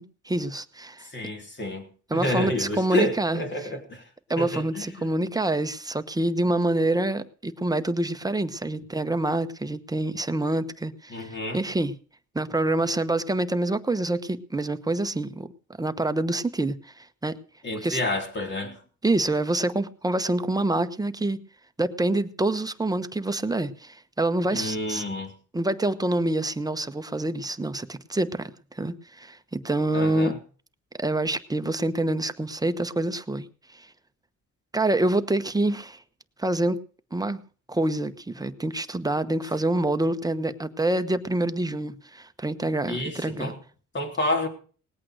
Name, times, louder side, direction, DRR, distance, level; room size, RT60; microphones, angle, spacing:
voice 1, 0.0-1.1 2.1-3.4 4.3-11.9 12.3-15.5 15.8-17.3 17.8-18.0 19.0-21.4 21.8-25.0 25.5-30.3 30.9-33.5 33.7-33.9 34.7-36.0 36.4-36.8 37.1-37.4 37.7-43.5, right 2 dB, 10° right, 1.0 m, -26 dB
voice 2, 1.0-1.9 2.1-4.0 4.4-5.1 11.1-11.6 17.6-18.8 24.5-25.3 29.9-30.4 42.9-43.6 43.9-44.5, left 1 dB, 40° left, 3.7 m, -29 dB
19.0 x 8.6 x 6.4 m
cardioid pair, 90°, 30 cm